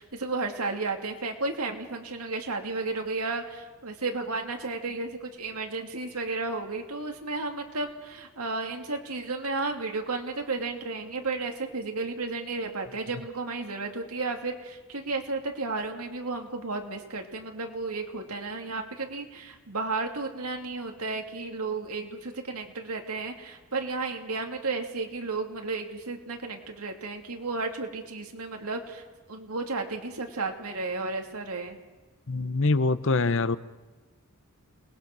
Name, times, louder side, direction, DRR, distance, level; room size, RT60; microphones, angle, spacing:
voice 1, 0.0-29.0 29.3-31.8, right 3 dB, 85° right, 3 dB, 2.8 m, -33 dB
voice 2, 32.3-33.6, left 3 dB, 60° left, 14 dB, 0.8 m, -24 dB
29.0 x 20.5 x 6.2 m, 1.3 s
head